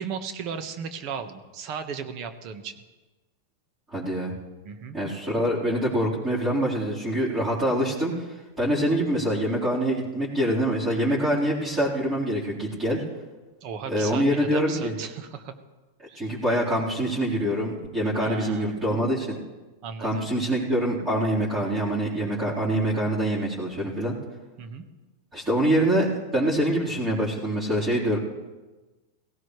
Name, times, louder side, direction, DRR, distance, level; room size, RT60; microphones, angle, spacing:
voice 1, 0.0-2.8 4.6-5.0 13.6-15.5 16.1-16.4 18.2-18.9 19.8-20.3 24.6-24.9, right 6 dB, 50° right, 8 dB, 1.4 m, -36 dB
voice 2, 3.9-4.3 4.9-8.3 8.6-13.0 13.9-14.9 16.1-19.4 20.0-24.1 25.3-28.2, right 1 dB, 15° right, -9 dB, 4.3 m, -25 dB
17.5 x 16.5 x 3.3 m, 1.2 s
hypercardioid pair, 110°, 0 cm